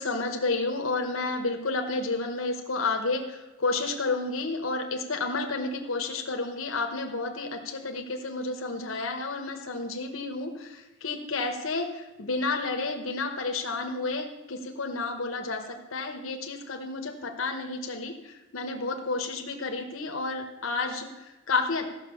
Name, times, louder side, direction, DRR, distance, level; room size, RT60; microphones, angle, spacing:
voice 1, 0.0-21.9, left 3 dB, 80° left, 4 dB, 1.1 m, -31 dB
14.0 x 6.1 x 7.0 m, 1.1 s
head